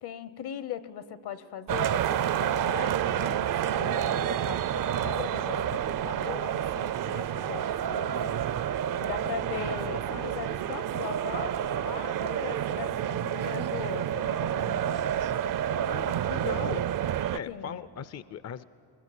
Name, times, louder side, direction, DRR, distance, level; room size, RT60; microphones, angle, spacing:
voice 1, 0.0-8.4 9.0-15.0 17.5-17.8, left 9 dB, 65° left, 15 dB, 1.0 m, -39 dB
sound 1, 1.7-17.4, right 10 dB, 50° right, 0.5 m, -29 dB
voice 2, 15.7-16.8 17.3-18.6, left 8 dB, 40° left, 16 dB, 0.5 m, -38 dB
23.5 x 21.5 x 8.3 m, 2.6 s
cardioid pair, 85°, 42 cm